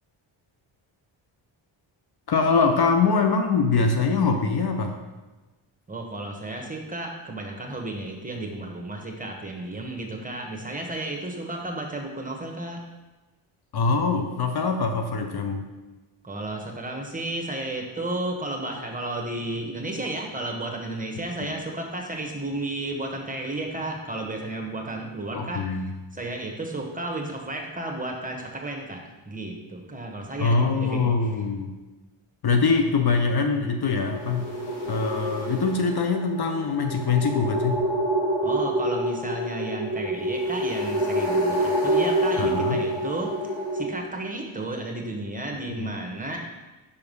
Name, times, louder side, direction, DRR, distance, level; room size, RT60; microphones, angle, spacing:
voice 1, 2.3-5.0 13.7-15.7 21.4-21.5 25.3-25.9 30.4-31.7 32.4-34.5 34.9-37.8 42.4-42.8 45.8-45.9, left 4 dB, 50° left, 4 dB, 0.8 m, -23 dB
voice 2, 5.9-12.8 16.2-25.6 26.1-31.3 38.4-46.4, right 2 dB, 15° right, 1 dB, 1.2 m, -33 dB
sound 1, 34.0-43.8, right 1 dB, 70° left, 2.4 m, -27 dB
5.1 x 4.8 x 5.3 m, 1.1 s
cardioid pair, 65°, 49 cm